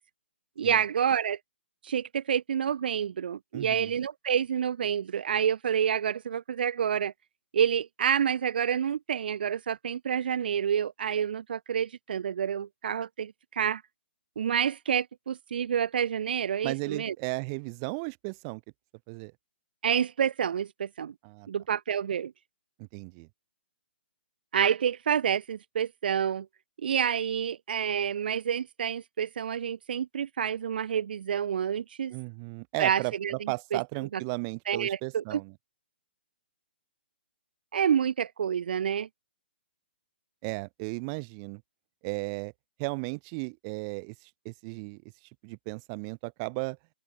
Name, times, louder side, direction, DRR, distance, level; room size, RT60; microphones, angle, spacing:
voice 1, 0.6-1.4 1.8-7.1 7.5-13.8 14.4-17.1 19.8-21.1 21.5-22.3 24.5-26.5 26.8-32.1 32.8-34.2 34.7-35.4 37.7-39.1, right 8 dB, 55° right, 4.8 m, -28 dB
voice 2, 3.5-3.9 16.6-18.6 19.1-19.3 21.2-21.5 22.9-23.3 32.1-35.5 40.4-41.6 42.0-42.5 42.8-44.1 44.4-45.0 45.4-46.8, right 35 dB, 25° right, 6.2 m, -35 dB
open air
hypercardioid pair, 165°, 6 cm